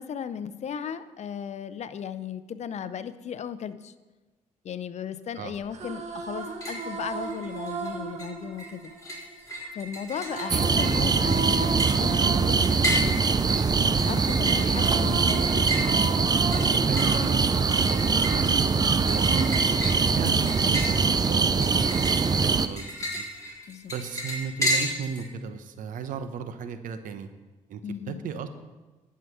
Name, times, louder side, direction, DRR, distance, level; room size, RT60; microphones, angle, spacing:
voice 1, 0.0-3.9 4.6-8.9 9.7-15.7 23.7-23.9 27.8-28.3, left 8 dB, 55° left, 13 dB, 0.7 m, -36 dB
sound 1, 5.5-9.6 10.2-14.3 14.5-18.8 19.3-20.7, right 4 dB, 55° right, 1.5 m, -35 dB
sound 2, 6.4-6.9 7.2-7.9 8.2-25.2, equal, 25° left, 3.8 m, -33 dB
sound 3, 10.5-22.7, right 5 dB, 30° right, 0.5 m, -23 dB
voice 2, 16.6-19.5 20.1-23.2 23.9-27.3 27.7-27.8 28.1-28.5, right 6 dB, 75° right, 10 dB, 0.9 m, -36 dB
11.0 x 5.7 x 7.8 m, 1.2 s
cardioid pair, 75°, 14 cm